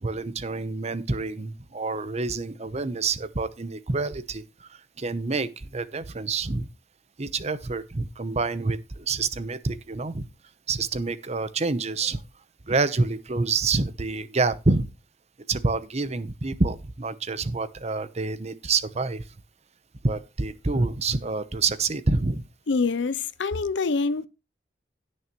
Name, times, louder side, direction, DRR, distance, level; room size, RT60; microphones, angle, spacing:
voice 1, 0.0-6.7 7.2-10.2 10.7-12.2 12.7-14.9 15.5-19.2 20.0-22.4, right 3 dB, 35° right, 0.8 m, -27 dB
voice 2, 22.7-24.3, left 4 dB, 75° left, 0.6 m, -25 dB
17.5 x 6.5 x 3.0 m
head